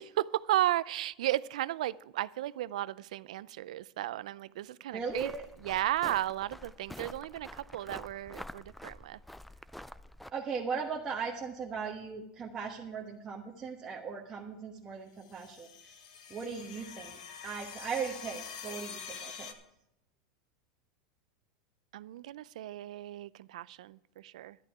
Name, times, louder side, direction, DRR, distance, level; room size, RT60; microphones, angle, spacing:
voice 1, 0.0-5.3 5.6-9.2 21.9-24.6, right 14 dB, 85° right, 0.4 m, -34 dB
voice 2, 4.9-5.5 10.3-16.0 16.3-19.5, right 6 dB, 20° right, 1.2 m, -38 dB
sound 1, 5.1-10.3, left 1 dB, ahead, 0.3 m, -47 dB
sound 2, 15.2-19.5, left 7 dB, 90° left, 1.4 m, -45 dB
11.5 x 10.5 x 4.8 m
supercardioid pair, 140°, 4 cm